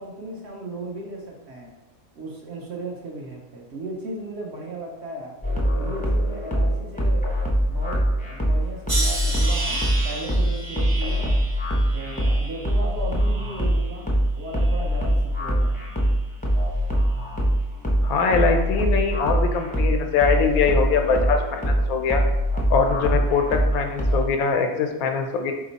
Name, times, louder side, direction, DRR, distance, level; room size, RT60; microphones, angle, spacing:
voice 1, 0.0-1.7 2.1-5.4 5.7-7.3 7.7-11.4 11.9-14.1 14.4-15.8, right 2 dB, 55° right, -1 dB, 0.9 m, -36 dB
sound 1, 5.4-24.2, equal, 10° left, 0.6 m, -23 dB
sound 2, 8.9-14.0 14.5-15.2 15.9-16.2, right 2 dB, 40° right, 1.1 m, -33 dB
voice 2, 18.0-22.2 22.7-25.5, left 5 dB, 85° left, 4 dB, 1.1 m, -22 dB
4.2 x 2.9 x 4.0 m, 1.0 s
omnidirectional pair, 1.5 m